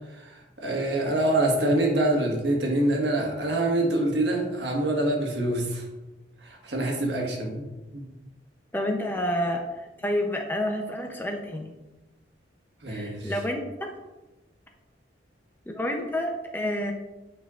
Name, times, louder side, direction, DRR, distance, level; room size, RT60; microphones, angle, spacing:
voice 1, 0.1-5.8 6.4-7.6 7.9-8.1 12.8-13.3, right 1 dB, 60° right, 0 dB, 1.5 m, -25 dB
voice 2, 8.7-11.7 12.9-13.9 15.7-16.9, left 1 dB, 10° left, 2 dB, 0.6 m, -29 dB
8.5 x 5.7 x 2.4 m, 1.1 s
head